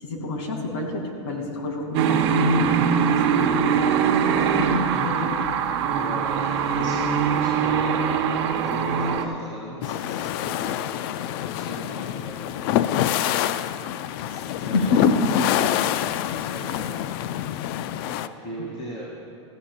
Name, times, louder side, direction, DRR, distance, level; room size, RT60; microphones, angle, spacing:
voice 1, 0.0-3.6 4.5-5.3 14.7-15.3, left 2 dB, 70° left, 1 dB, 2.5 m, -27 dB
sound 1, 1.9-9.3, right 7 dB, 60° right, 0.9 m, -22 dB
voice 2, 5.9-8.3 8.6-15.9 16.4-17.1 18.0-19.0, equal, 30° left, -4 dB, 2.3 m, -38 dB
sound 2, 9.8-18.3, left 12 dB, 50° left, 0.4 m, -26 dB
17.0 x 14.5 x 2.4 m, 2.7 s
hypercardioid pair, 125°, 16 cm